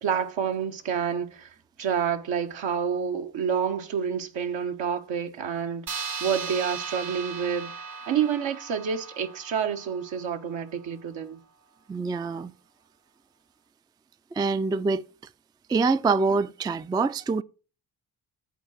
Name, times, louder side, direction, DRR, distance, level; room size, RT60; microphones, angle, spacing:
voice 1, 0.0-5.9 6.2-7.7 8.1-11.4, right 7 dB, 70° right, 1.1 m, -28 dB
sound 1, 5.9-10.7, right 5 dB, 45° right, 1.0 m, -37 dB
voice 2, 11.9-12.5 14.3-15.0 15.7-17.4, right 4 dB, 10° right, 0.3 m, -25 dB
8.2 x 3.9 x 6.3 m
supercardioid pair, 45°, 46 cm